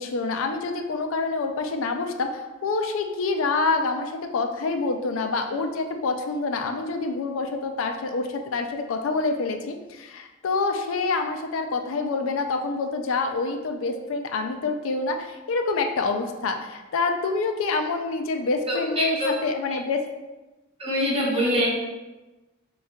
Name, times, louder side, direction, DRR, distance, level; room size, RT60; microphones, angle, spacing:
voice 1, 0.0-20.0, left 3 dB, 75° left, 5 dB, 0.4 m, -27 dB
voice 2, 18.7-19.3 20.8-21.7, equal, 30° right, -5 dB, 1.1 m, -24 dB
7.0 x 2.3 x 2.3 m, 1.1 s
head